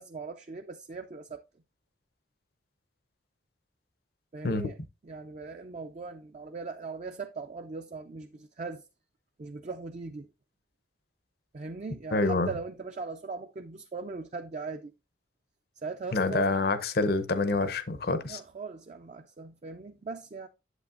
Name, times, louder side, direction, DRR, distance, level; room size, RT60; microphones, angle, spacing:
voice 1, 0.0-1.4 4.3-4.8 5.0-8.8 9.4-10.3 11.5-14.9 15.8-16.5 18.3-20.5, right 4 dB, 40° right, 0.4 m, -39 dB
voice 2, 12.1-12.5 16.1-18.4, left 3 dB, 55° left, 0.7 m, -27 dB
8.2 x 7.8 x 2.5 m
head